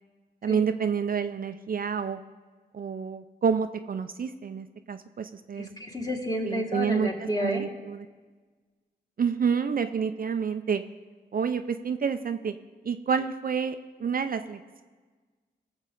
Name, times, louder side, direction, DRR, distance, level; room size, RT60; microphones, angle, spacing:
voice 1, 0.4-2.2 2.7-5.7 6.4-7.1 7.4-8.1 9.2-10.8 11.3-12.5 12.9-14.8, right 6 dB, 55° right, 8 dB, 0.5 m, -28 dB
voice 2, 5.6-7.7, equal, 20° left, 0 dB, 2.0 m, -31 dB
18.5 x 7.2 x 3.8 m, 1.4 s
cardioid pair, 60°, 18 cm